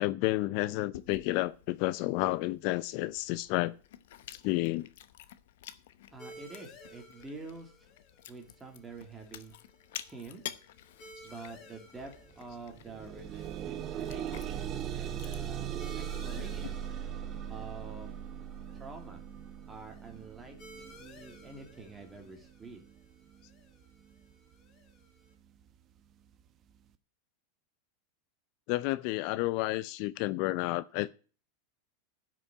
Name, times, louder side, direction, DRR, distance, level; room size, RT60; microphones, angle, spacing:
voice 1, 0.0-3.7 4.4-4.9 28.7-31.1, left 19 dB, 55° left, 0.5 m, -30 dB
Chewing mastication, 0.9-16.7, left 12 dB, 75° left, 0.9 m, -50 dB
voice 2, 6.1-7.9 8.3-9.5 10.1-10.4 11.2-14.7 14.9-16.8 17.5-18.2 18.8-19.2 19.7-22.8, right 3 dB, 15° right, 2.7 m, -47 dB
sound 1, 6.2-25.3, equal, 35° left, 3.4 m, -57 dB
sound 2, 12.0-12.2 12.5-23.5 24.3-24.4 24.9-25.0, right 9 dB, 35° right, 0.9 m, -40 dB
10.5 x 6.2 x 8.4 m
hypercardioid pair, 115°, 0 cm